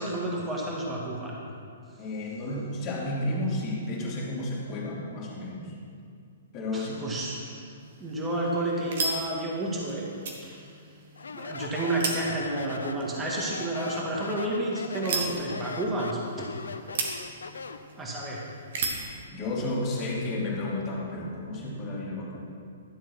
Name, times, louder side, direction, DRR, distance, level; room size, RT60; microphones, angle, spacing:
voice 1, 0.0-1.4 6.7-10.1 10.4-10.7 11.3-16.5 18.0-18.4, right 1 dB, 15° right, -4 dB, 2.1 m, -31 dB
voice 2, 2.0-5.7 6.5-7.1 19.0-22.4, left 1 dB, 30° left, -4 dB, 3.0 m, -32 dB
sound 1, 7.8-19.2, right 3 dB, 55° right, 1.8 m, -37 dB
Speech, 11.2-17.9, left 4 dB, 75° left, 0.6 m, -39 dB
12.5 x 7.4 x 6.1 m, 2.3 s
figure-of-eight pair, 120°, 0 cm